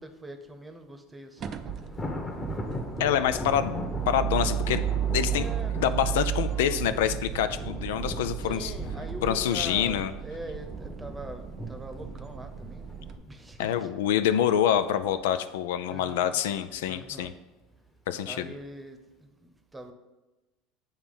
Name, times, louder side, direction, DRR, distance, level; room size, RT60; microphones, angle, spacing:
voice 1, 0.0-1.6 3.2-3.3 5.3-5.8 8.4-13.9 15.8-16.3 16.9-17.3 18.2-19.9, right 1 dB, 15° right, 6 dB, 0.9 m, -43 dB
Thunder, 1.4-14.7 15.1-15.4 15.7-15.8 16.7-17.3, left 1 dB, 25° left, 1.1 m, -39 dB
sound 1, 1.4-13.2, right 10 dB, 45° right, 0.4 m, -34 dB
voice 2, 3.0-5.4 5.8-8.7 9.2-10.1 13.6-17.3 18.1-18.5, left 10 dB, 75° left, 11 dB, 0.3 m, -26 dB
8.0 x 3.0 x 5.4 m, 1.1 s
hypercardioid pair, 85°, 0 cm